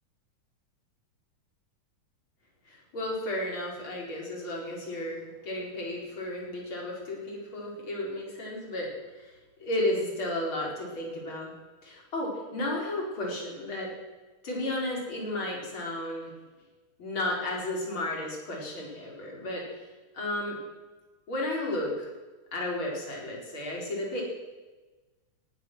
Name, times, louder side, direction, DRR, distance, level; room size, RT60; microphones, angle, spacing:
voice 1, 2.6-11.5 11.8-13.9 14.4-16.3 17.0-19.6 20.1-20.6 21.3-22.1 22.5-24.2, left 1 dB, 35° left, -2 dB, 5.0 m, -33 dB
18.5 x 12.0 x 6.2 m, 1.2 s
omnidirectional pair, 3.8 m